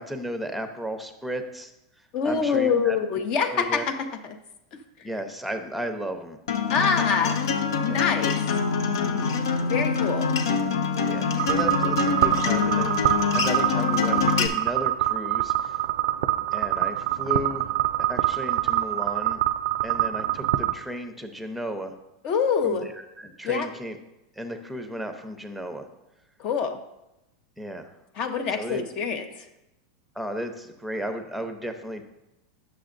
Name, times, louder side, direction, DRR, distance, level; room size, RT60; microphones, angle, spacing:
voice 1, 0.0-1.7 2.2-3.0 3.5-3.8 5.0-6.4 7.9-8.0 9.0-9.4 11.0-15.8 16.5-17.7 18.0-19.4 19.8-22.0 22.6-24.0 24.3-25.9 27.6-27.9 28.5-28.9 30.1-32.0, equal, ahead, 6 dB, 0.7 m, -34 dB
voice 2, 2.1-3.9 4.2-4.4 5.0-5.1 6.7-7.4 7.8-8.4 9.6-10.3 22.2-22.9 23.4-23.7 26.4-26.8 28.2-29.5, left 6 dB, 45° left, 7 dB, 0.7 m, -25 dB
Acoustic guitar, 6.5-14.5, left 6 dB, 90° left, 0.7 m, -25 dB
sound 1, 11.4-20.7, right 14 dB, 75° right, 0.4 m, -25 dB
9.2 x 6.6 x 2.6 m, 0.93 s
supercardioid pair, 130°, 2 cm